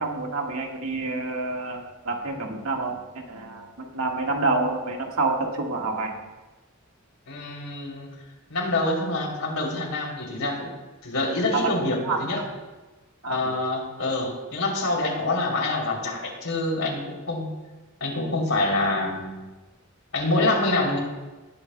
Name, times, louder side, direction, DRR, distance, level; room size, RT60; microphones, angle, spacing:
voice 1, 0.0-6.2 11.5-11.6 12.0-12.4 13.2-13.4, right 3 dB, 75° right, 1 dB, 1.7 m, -28 dB
voice 2, 7.3-8.1 8.5-10.7 11.0-12.4 13.2-17.5 18.0-19.4 20.1-21.0, left 2 dB, 85° left, -1 dB, 3.2 m, -26 dB
18.5 x 10.5 x 2.3 m, 1.2 s
head